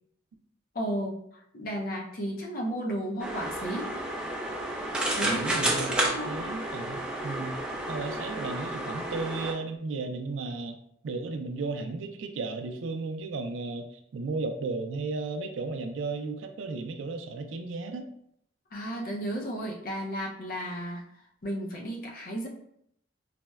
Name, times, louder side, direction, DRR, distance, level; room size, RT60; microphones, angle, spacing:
voice 1, 0.7-1.2 1.5-3.9 5.2-6.4 18.7-21.0 21.4-22.5, equal, 50° left, -1 dB, 0.5 m, -34 dB
sound 1, 3.2-9.5, right 1 dB, 5° right, 0.4 m, -31 dB
voice 2, 5.2-7.6 7.9-10.8 11.0-18.1, right 3 dB, 85° right, 6 dB, 0.4 m, -34 dB
4.1 x 2.1 x 2.3 m, 0.71 s
head